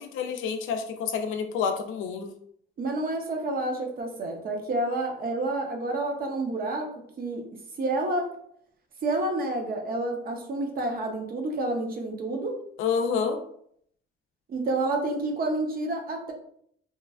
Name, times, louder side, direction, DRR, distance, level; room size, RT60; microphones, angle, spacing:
voice 1, 0.0-2.3 12.8-13.4, left 6 dB, 85° left, 7 dB, 0.4 m, -28 dB
voice 2, 2.8-6.9 7.2-7.5 7.8-8.3 9.0-12.6 14.5-16.3, right 2 dB, 50° right, 2 dB, 0.7 m, -29 dB
3.0 x 2.2 x 2.3 m, 0.67 s
cardioid pair, 90°, 20 cm